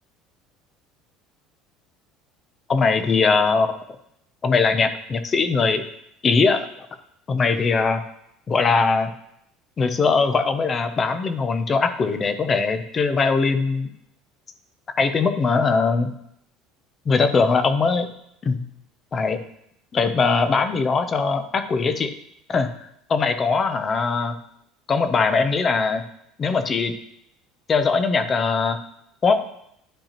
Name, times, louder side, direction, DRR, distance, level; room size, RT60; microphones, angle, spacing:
voice 1, 2.7-3.8 4.4-5.8 6.2-6.9 7.3-8.0 8.5-9.1 9.8-13.9 15.0-16.1 17.1-18.1 18.4-18.6 19.1-19.4 19.9-22.1 22.5-22.7 23.1-24.4 24.9-26.0 26.4-26.9 27.7-28.8 29.2-29.4, left 4 dB, 25° left, 9 dB, 0.6 m, -21 dB
10.5 x 5.3 x 2.9 m, 0.74 s
cardioid pair, 155°, 0 cm